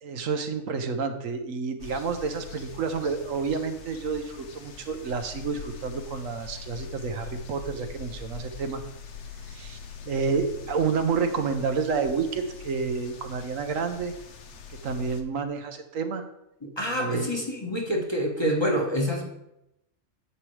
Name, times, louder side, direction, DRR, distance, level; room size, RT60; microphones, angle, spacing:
voice 1, 0.0-8.8 9.5-9.8 10.1-14.1 14.8-16.2 16.9-17.3, right 5 dB, 85° right, 7 dB, 1.3 m, -29 dB
sound 1, 1.8-15.2, left 5 dB, 65° left, 1.1 m, -43 dB
voice 2, 16.6-19.3, equal, 20° left, 0 dB, 1.2 m, -27 dB
10.0 x 7.4 x 3.3 m, 0.83 s
omnidirectional pair, 1.3 m